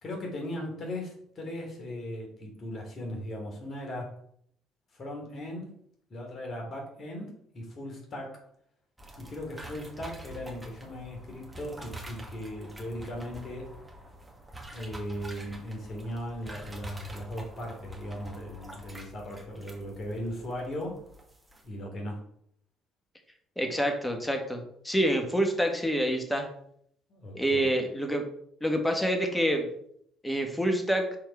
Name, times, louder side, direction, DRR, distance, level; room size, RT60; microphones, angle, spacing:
voice 1, 0.0-4.1 4.9-5.8 6.1-8.5 9.2-13.7 14.7-21.0 21.6-22.2 27.1-27.7, equal, 45° left, 0 dB, 3.5 m, -38 dB
sound 1, 9.0-21.7, equal, 15° right, 2.4 m, -46 dB
voice 2, 23.6-26.5 27.3-28.3 28.6-29.7 30.2-31.2, equal, 10° left, 4 dB, 2.1 m, -27 dB
7.5 x 4.7 x 4.9 m, 0.68 s
hypercardioid pair, 60°, 0 cm